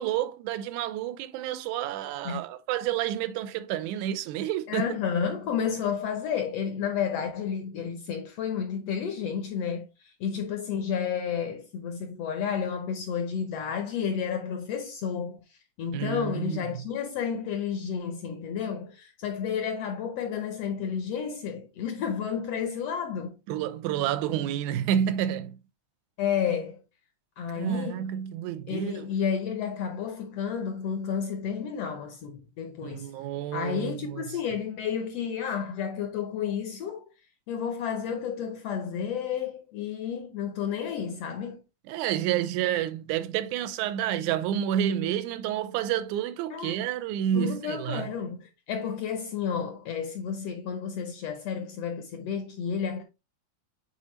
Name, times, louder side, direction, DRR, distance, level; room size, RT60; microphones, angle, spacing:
voice 1, 0.0-4.8 15.9-16.8 23.5-25.6 27.6-29.1 32.8-34.2 41.9-48.1, right 10 dB, 85° right, 2.0 m, -29 dB
voice 2, 4.7-23.4 26.2-26.8 27.4-28.0 28.7-33.1 33.5-37.1 37.5-41.6 46.5-46.8 47.3-53.0, left 7 dB, 70° left, 1.5 m, -31 dB
8.0 x 3.9 x 3.1 m
omnidirectional pair, 3.6 m